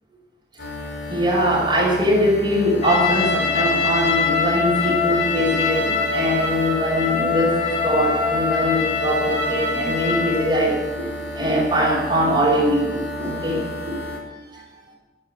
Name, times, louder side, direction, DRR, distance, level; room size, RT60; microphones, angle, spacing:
sound 1, 0.6-14.2, left 1 dB, 80° left, 5.4 m, -33 dB
voice 1, 1.1-11.1 11.3-14.0 14.5-14.6, equal, 25° right, -4 dB, 5.4 m, -22 dB
Trumpet, 2.8-10.5, left 4 dB, 40° left, 5.2 m, -23 dB
14.0 x 11.0 x 8.8 m, 1.2 s
head